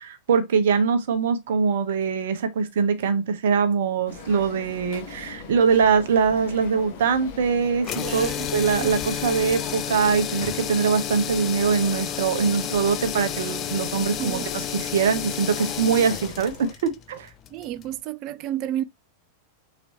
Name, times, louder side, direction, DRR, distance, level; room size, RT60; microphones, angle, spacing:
voice 1, 0.0-17.3, right 6 dB, 60° right, 0.9 m, -23 dB
sound 1, 4.1-16.7, left 5 dB, 50° left, 1.6 m, -40 dB
sound 2, 7.8-17.9, left 9 dB, 30° left, 0.6 m, -31 dB
voice 2, 8.0-8.5 8.8-9.0 14.2-14.5 17.5-18.8, right 12 dB, 40° right, 0.4 m, -31 dB
4.4 x 4.1 x 2.7 m
figure-of-eight pair, 90°, 0 cm